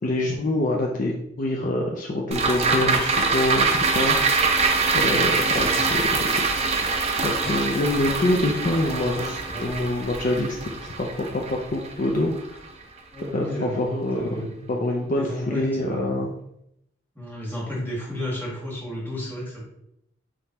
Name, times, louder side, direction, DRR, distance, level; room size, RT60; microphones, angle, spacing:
voice 1, 0.0-4.4 4.9-6.3 7.1-9.3 9.6-12.6 13.3-16.3, left 1 dB, 45° left, 0 dB, 0.4 m, -26 dB
sound 1, 2.3-12.8 13.2-13.3, right 4 dB, 35° right, 0.5 m, -24 dB
voice 2, 9.1-9.7 13.1-13.8 14.1-14.6 15.1-16.1 17.1-19.6, left 1 dB, 10° left, -5 dB, 1.5 m, -32 dB
4.1 x 3.6 x 2.9 m, 0.78 s
head